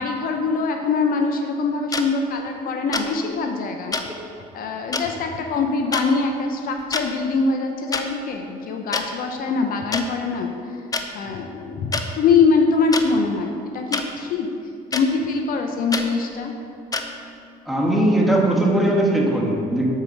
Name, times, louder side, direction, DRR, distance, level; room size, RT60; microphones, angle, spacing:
voice 1, 0.0-4.0 4.5-10.8 11.1-14.5 14.9-16.5, left 4 dB, 60° left, 4 dB, 0.7 m, -23 dB
sound 1, 1.9-2.0 2.9-3.1 3.9-4.0 4.9-5.0 5.9-6.1 6.8-7.1 7.9-8.0 8.9-9.0 9.9-10.0 10.9-11.0 11.9-12.0 12.9-13.1 13.9-14.1 14.9-15.0 15.9-16.1 16.9-17.0, left 4 dB, 20° left, 0.6 m, -25 dB
voice 2, 17.6-19.9, right 1 dB, ahead, -2 dB, 1.4 m, -19 dB
7.4 x 4.6 x 5.3 m, 2.7 s
supercardioid pair, 85°, 17 cm